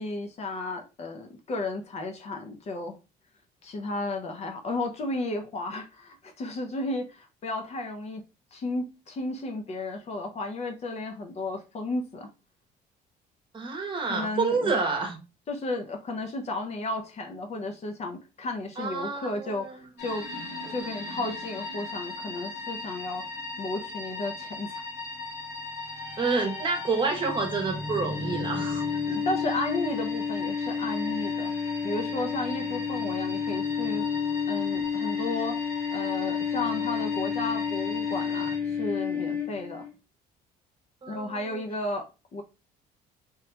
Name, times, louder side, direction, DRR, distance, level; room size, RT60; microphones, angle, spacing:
voice 1, 0.0-3.0 3.6-12.3 14.1-14.8 15.5-20.3 20.7-23.2 23.6-24.8 29.1-31.5 31.8-34.0 34.5-35.6 35.9-39.8 41.1-42.4, left 2 dB, 40° left, 0.6 m, -33 dB
voice 2, 13.5-15.2 18.8-19.9 20.6-20.7 21.1-21.2 26.2-29.2 41.0-41.6, right 4 dB, 30° right, 0.9 m, -29 dB
sound 1, 20.0-38.6, left 3 dB, 70° left, 1.6 m, -38 dB
sound 2, 25.8-39.9, left 6 dB, 10° left, 1.1 m, -31 dB
3.0 x 2.3 x 3.2 m
cardioid pair, 110°, 17 cm